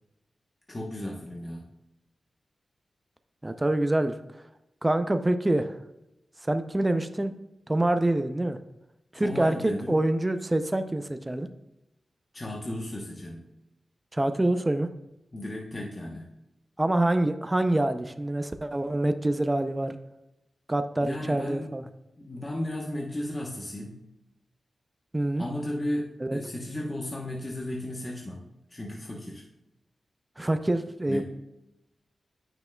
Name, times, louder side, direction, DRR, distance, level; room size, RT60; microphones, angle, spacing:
voice 1, 0.7-1.6 9.2-10.0 12.3-13.4 15.3-16.3 21.0-21.7 22.2-24.0 25.4-29.5 31.1-31.2, left 1 dB, 30° left, -2 dB, 1.0 m, -35 dB
voice 2, 3.4-4.4 4.8-5.8 6.4-7.3 7.7-8.6 9.1-11.5 14.1-14.9 16.8-20.0 20.7-21.8 25.1-25.4 26.2-26.4 30.4-31.2, right 1 dB, 20° right, 9 dB, 0.4 m, -26 dB
9.0 x 5.9 x 2.3 m, 0.90 s
cardioid pair, 60°, 0 cm